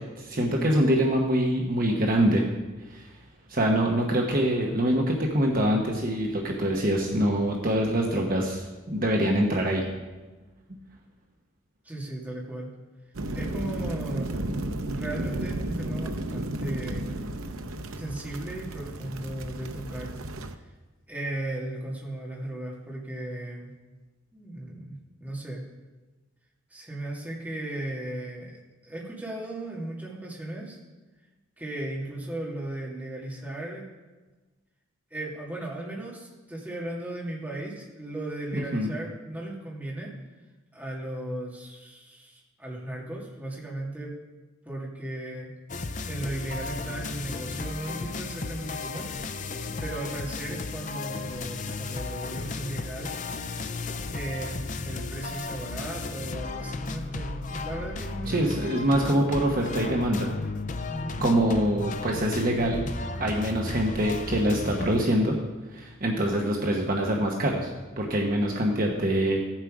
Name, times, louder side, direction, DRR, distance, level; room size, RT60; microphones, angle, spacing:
voice 1, 0.2-2.4 2.9-3.1 3.5-9.8 38.5-38.9 58.3-60.3 61.2-62.8 63.2-65.4 65.7-69.4, right 1 dB, 45° right, 0 dB, 1.1 m, -24 dB
voice 2, 11.8-12.7 13.3-14.4 14.8-17.1 18.0-20.1 21.1-23.7 24.3-25.6 26.7-30.8 31.6-33.8 35.1-40.1 40.7-44.1 44.6-45.5 46.1-49.1 49.5-53.1 54.1-59.3 60.9-61.3, right 1 dB, 10° right, -4 dB, 2.1 m, -36 dB
sound 1, 13.1-20.5, right 1 dB, 85° right, 0.7 m, -33 dB
sound 2, 45.7-65.0, left 3 dB, 35° left, 0.5 m, -34 dB
15.0 x 7.5 x 4.9 m, 1.2 s
head